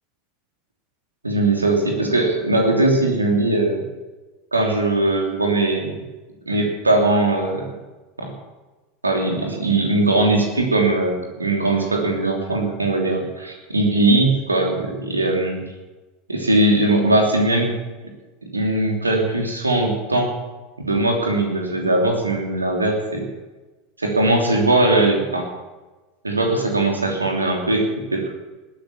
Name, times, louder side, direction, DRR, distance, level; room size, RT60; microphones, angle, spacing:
voice 1, 1.2-3.8 4.5-6.0 6.5-7.7 8.2-8.3 9.0-15.6 16.3-17.7 18.5-20.3 20.8-23.2 24.0-25.5 26.2-28.3, right 2 dB, 85° right, 2 dB, 3.0 m, -20 dB
20.0 x 9.2 x 7.2 m, 1.2 s
figure-of-eight pair, 80°, 0 cm